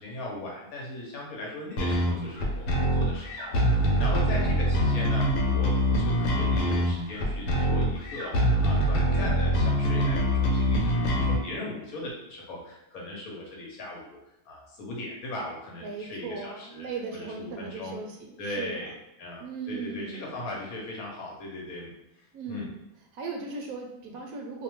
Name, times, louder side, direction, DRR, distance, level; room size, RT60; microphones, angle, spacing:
voice 1, 0.0-14.2 14.5-18.0 18.4-18.9 19.2-22.7, left 1 dB, 70° left, -2 dB, 1.1 m, -38 dB
sound 1, 1.8-11.4, equal, 90° left, 1.2 m, -24 dB
voice 2, 4.0-4.5 15.8-18.9 19.4-20.4 22.3-22.8 23.1-24.6, right 4 dB, 70° right, 1 dB, 1.0 m, -38 dB
2.6 x 2.2 x 2.9 m, 0.87 s
omnidirectional pair, 1.7 m